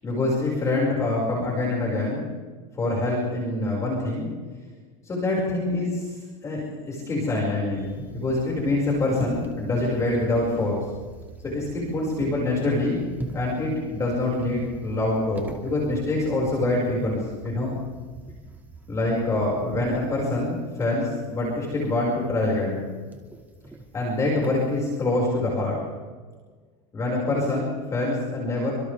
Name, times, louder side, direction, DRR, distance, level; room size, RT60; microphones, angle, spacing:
voice 1, 0.0-2.2 2.8-4.3 5.1-6.2 6.4-6.6 6.9-10.8 11.4-13.0 13.3-17.7 18.9-22.9 23.9-25.8 26.9-28.7, left 2 dB, 20° left, -3 dB, 6.4 m, -25 dB
sound 1, 7.7-25.1, right 2 dB, 10° right, 2.6 m, -42 dB
29.5 x 26.5 x 3.7 m, 1.5 s
supercardioid pair, 150°, 16 cm